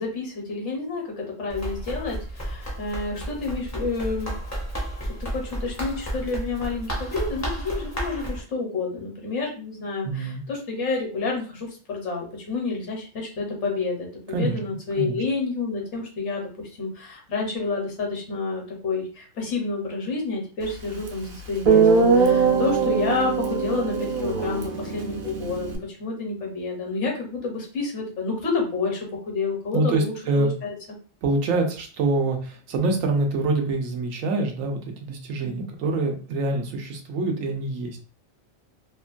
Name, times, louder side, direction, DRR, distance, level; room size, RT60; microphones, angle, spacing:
voice 1, 0.0-4.3 5.3-30.7, left 3 dB, 65° left, 0 dB, 1.1 m, -29 dB
Run, 1.5-8.4, right 1 dB, 20° left, 0.5 m, -32 dB
voice 2, 10.0-10.4 14.3-14.6 15.0-15.2 29.7-30.5 31.2-38.0, right 2 dB, 90° right, 3 dB, 1.0 m, -25 dB
Guitar, 21.1-21.2 21.7-25.8, right 5 dB, 60° right, 0.7 m, -21 dB
2.9 x 2.2 x 2.4 m, 0.38 s
omnidirectional pair, 1.3 m